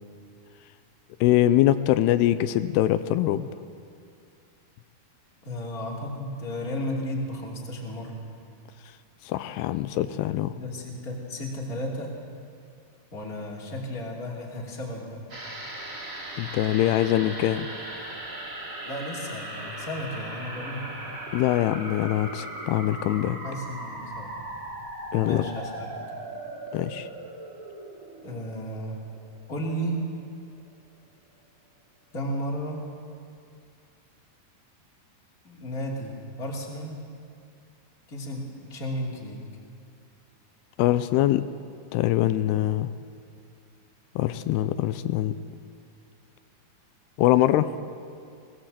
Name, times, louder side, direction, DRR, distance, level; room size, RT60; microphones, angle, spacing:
voice 1, 1.2-3.5 9.3-10.5 16.4-17.7 21.3-23.4 25.1-25.4 26.7-27.1 40.8-41.5 41.9-42.9 44.2-45.4 47.2-47.7, left 13 dB, 85° left, 12 dB, 2.7 m, -23 dB
voice 2, 5.4-8.2 10.5-12.1 13.1-15.2 18.8-20.9 23.4-24.3 25.2-25.9 28.2-29.0 29.5-30.0 32.1-32.9 35.4-37.0 38.1-39.4, equal, 25° left, -2 dB, 2.9 m, -33 dB
sound 1, 15.3-29.9 30.2-30.3, right 1 dB, 20° right, 2.9 m, -38 dB
21.0 x 17.5 x 7.6 m, 2.3 s
omnidirectional pair, 4.6 m